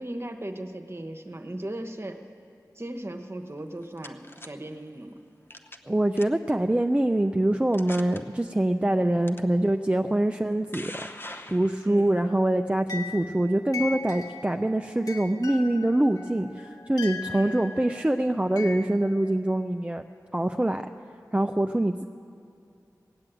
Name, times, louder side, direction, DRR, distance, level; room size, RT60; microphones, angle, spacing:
voice 1, 0.0-2.2 2.7-5.2 9.1-9.2 11.9-12.1 17.3-17.5, right 1 dB, 35° right, 6 dB, 1.1 m, -37 dB
sound 1, 3.6-4.5 5.5-5.9 6.2-6.5 7.2-7.3 7.7-8.2 9.3-9.4 10.3-12.1, left 1 dB, 35° left, 0.8 m, -42 dB
voice 2, 5.9-10.9 11.5-20.0 20.3-20.9 21.3-22.0, right 1 dB, 15° right, 6 dB, 0.4 m, -24 dB
sound 2, 12.1-19.4, left 4 dB, 65° left, 1.4 m, -40 dB
18.0 x 7.6 x 9.0 m, 2.5 s
wide cardioid pair, 55°, 7 cm